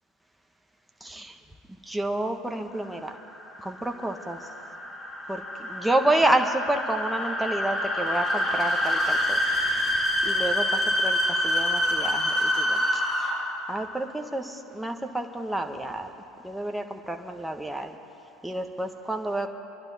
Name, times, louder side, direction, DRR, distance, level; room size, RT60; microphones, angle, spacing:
voice 1, 1.0-1.4 1.8-3.2 3.6-4.4 5.3-9.4 10.2-13.0 13.7-16.2 16.4-17.9 18.4-19.5, right 1 dB, 5° right, 4 dB, 1.2 m, -29 dB
sound 1, 2.9-13.6, left 1 dB, 30° left, 3.7 m, -27 dB
24.5 x 11.5 x 4.1 m, 2.7 s
hypercardioid pair, 75°, 0 cm